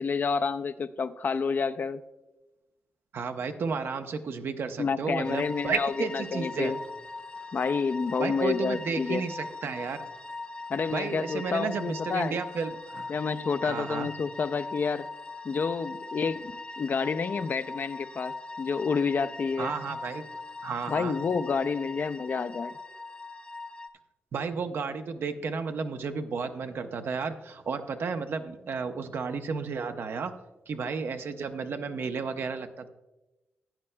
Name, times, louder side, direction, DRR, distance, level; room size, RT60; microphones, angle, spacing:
voice 1, 0.0-2.0 4.8-6.8 7.5-9.2 10.7-12.4 13.1-15.1 15.4-19.7 20.9-22.7, left 5 dB, 50° left, 11 dB, 0.4 m, -29 dB
voice 2, 3.1-6.7 8.2-10.0 10.9-13.1 13.6-14.1 19.6-20.3 20.6-21.2 24.3-30.3 30.7-32.9, right 5 dB, 70° right, 7 dB, 0.7 m, -32 dB
sound 1, 5.2-23.9, left 3 dB, 25° left, 0.8 m, -41 dB
14.5 x 9.7 x 2.2 m, 1.0 s
cardioid pair, 80°, 4 cm